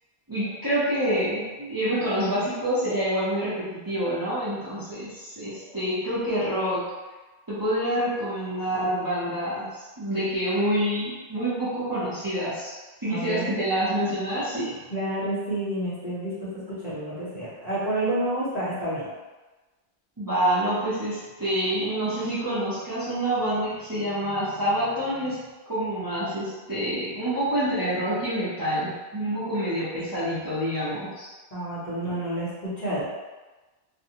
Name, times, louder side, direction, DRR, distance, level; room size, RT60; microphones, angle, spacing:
voice 1, 0.3-6.8 7.5-12.7 13.0-14.8 20.2-25.4 25.7-31.3, equal, 20° right, -12 dB, 0.7 m, -27 dB
voice 2, 13.0-13.5 14.9-19.1 31.5-33.1, right 1 dB, 40° left, -10 dB, 0.8 m, -29 dB
2.5 x 2.2 x 2.8 m, 1.2 s
omnidirectional pair, 1.2 m